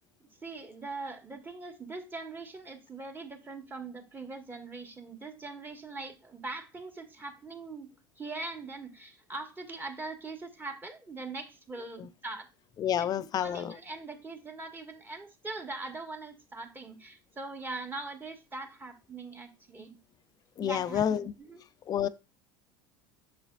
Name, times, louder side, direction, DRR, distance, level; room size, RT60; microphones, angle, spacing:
voice 1, 0.4-7.9 8.2-12.5 12.9-13.1 13.4-20.0 20.6-21.6, right 3 dB, 20° right, 1.7 m, -41 dB
voice 2, 12.8-13.7 20.6-21.3 21.9-22.1, left 9 dB, 35° left, 0.5 m, -29 dB
6.9 x 6.6 x 2.5 m
hypercardioid pair, 80°, 11 cm